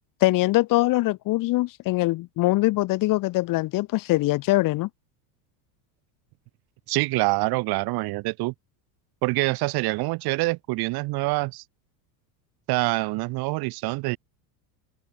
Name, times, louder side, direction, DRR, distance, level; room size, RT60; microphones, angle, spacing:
voice 1, 0.2-4.9, left 19 dB, 40° left, 1.9 m, -22 dB
voice 2, 6.9-8.5 9.2-11.6 12.7-14.2, right 22 dB, 50° right, 3.5 m, -25 dB
open air
cardioid pair, 155°, 48 cm